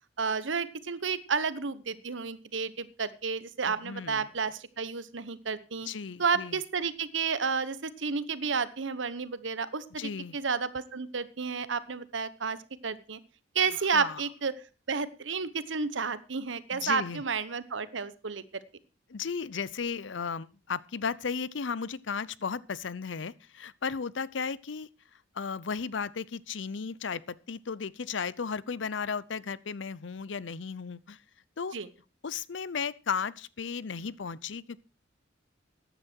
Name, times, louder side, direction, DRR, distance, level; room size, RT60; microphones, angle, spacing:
voice 1, 0.2-5.9 6.2-12.6 12.8-13.2 13.5-14.6 14.9-18.4 31.7-31.9, right 5 dB, 80° right, 1.0 m, -31 dB
voice 2, 3.7-4.3 5.9-6.6 10.0-10.4 13.9-14.2 16.7-17.2 19.1-24.9 25.3-31.2 31.6-31.7 32.2-34.8, left 5 dB, 75° left, 0.6 m, -35 dB
14.5 x 10.5 x 4.4 m
head